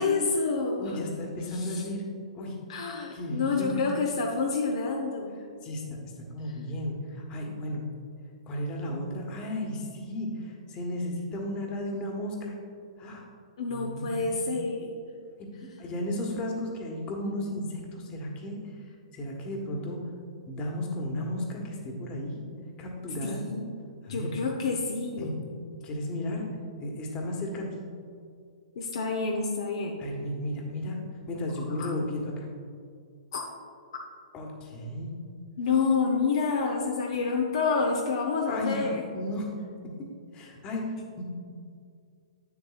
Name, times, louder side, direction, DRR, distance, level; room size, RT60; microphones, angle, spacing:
voice 1, 0.0-1.0 1.5-1.8 2.7-5.4 13.6-14.9 23.2-23.7 24.1-25.3 28.8-29.9 31.8-31.9 33.3-33.4 35.6-39.0, left 4 dB, 60° left, 1 dB, 0.7 m, -28 dB
voice 2, 0.8-2.0 2.3-2.5 3.1-3.8 5.6-5.8 6.2-7.8 8.5-12.5 13.0-13.3 13.7-14.3 15.4-18.6 19.1-20.0 20.5-22.4 22.8-23.4 24.0-24.3 25.2-25.3 25.8-26.5 26.8-27.8 30.0-31.0 31.3-32.5 34.3-35.1 38.5-38.8 39.1-39.4 40.3-41.2, left 1 dB, 30° left, 1 dB, 1.3 m, -34 dB
8.9 x 7.1 x 2.4 m, 2.3 s
figure-of-eight pair, 115°, 3 cm